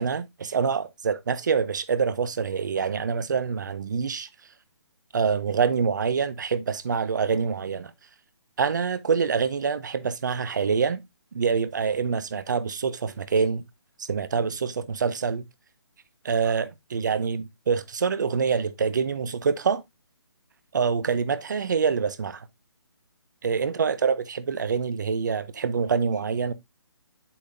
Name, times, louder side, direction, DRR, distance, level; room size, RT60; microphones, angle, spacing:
voice 1, 0.0-4.3 5.1-7.9 8.6-11.0 11.3-13.6 14.0-15.4 16.2-19.8 20.7-22.5 23.4-26.5, right 6 dB, 40° right, 0.6 m, -26 dB
8.6 x 5.3 x 2.6 m
hypercardioid pair, 175°, 15 cm